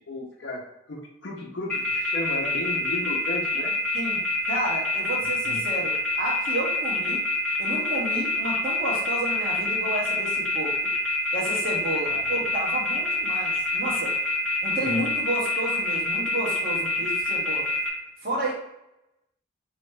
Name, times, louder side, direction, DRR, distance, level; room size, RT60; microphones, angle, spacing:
voice 1, 0.1-3.7 5.4-5.6 12.1-12.3 14.8-15.0, left 2 dB, 60° left, -4 dB, 0.6 m, -34 dB
sound 1, 1.7-17.9, left 3 dB, 5° left, 1.1 m, -26 dB
voice 2, 4.5-7.2 7.6-10.7 11.3-14.1 14.6-17.7 18.2-18.5, right 1 dB, 45° right, -4 dB, 1.5 m, -31 dB
4.7 x 3.2 x 3.2 m, 0.87 s
head